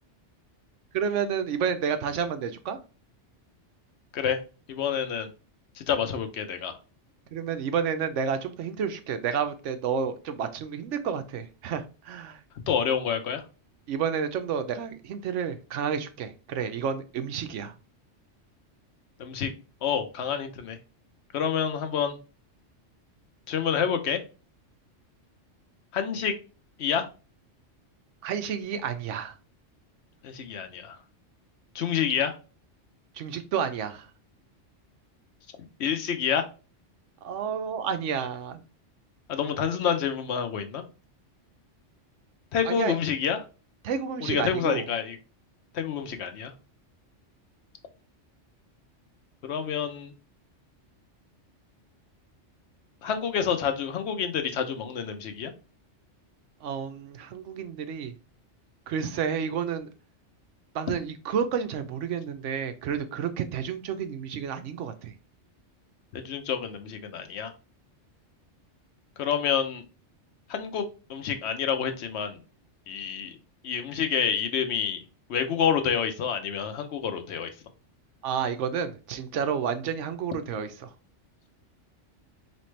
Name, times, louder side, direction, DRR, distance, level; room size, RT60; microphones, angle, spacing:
voice 1, 0.9-2.8 7.3-12.4 13.9-17.7 28.2-29.3 33.1-34.1 37.2-38.6 42.6-43.0 43.8-44.9 56.6-58.1 58.9-59.9 60.7-65.1 78.2-80.9, right 7 dB, 90° right, 9 dB, 1.0 m, -30 dB
voice 2, 4.7-5.3 5.9-6.8 12.7-13.4 19.2-19.5 19.8-20.8 21.3-22.2 23.5-24.2 25.9-26.3 26.8-27.1 30.2-31.0 31.7-32.4 35.8-36.5 39.3-40.8 42.5-43.4 44.3-45.2 45.7-46.5 49.4-50.1 53.0-55.5 66.1-67.5 69.2-69.8 70.5-72.4 72.9-73.4 73.6-75.0 75.3-77.5, left 7 dB, 70° left, 8 dB, 1.0 m, -28 dB
4.2 x 3.2 x 3.1 m, 0.34 s
omnidirectional pair, 1.2 m